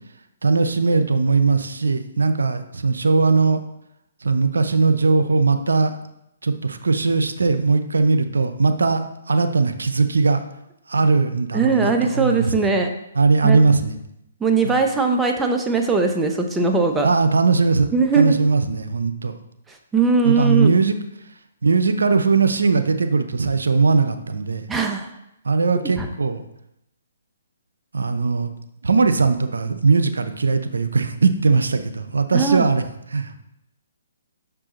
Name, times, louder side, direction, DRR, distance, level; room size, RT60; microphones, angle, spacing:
voice 1, 0.4-3.6 4.2-6.0 6.4-9.0 9.3-10.4 10.9-12.5 13.2-13.9 14.6-14.8 17.0-17.9 18.2-19.3 20.2-21.0 21.6-24.6 25.4-26.4 27.9-28.5 28.8-32.8 33.1-33.4, right 4 dB, 85° right, 9 dB, 0.7 m, -19 dB
voice 2, 11.5-12.9 13.4-13.6 14.4-17.1 17.9-18.4 19.9-20.7 24.7-25.1 26.0-26.1 32.3-32.7, right 4 dB, 10° right, 3 dB, 0.7 m, -20 dB
6.6 x 4.8 x 3.7 m, 0.82 s
hypercardioid pair, 140°, 0 cm